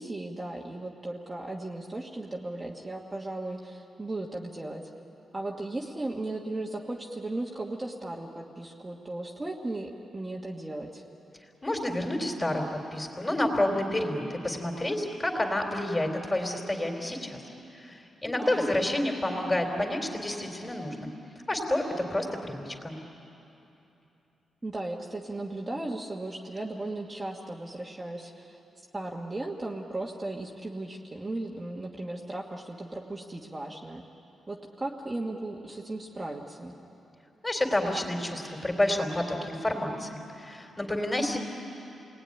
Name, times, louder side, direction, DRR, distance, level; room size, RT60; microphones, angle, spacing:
voice 1, 0.0-4.9 5.3-11.0 18.4-18.7 24.6-28.6 28.9-34.0 34.5-36.7, right 2 dB, 20° right, -2 dB, 1.5 m, -36 dB
voice 2, 11.6-17.4 17.7-21.1 21.5-22.9 37.4-41.4, left 1 dB, 15° left, 2 dB, 3.7 m, -29 dB
29.5 x 20.0 x 10.0 m, 3.0 s
wide cardioid pair, 140°, 0 cm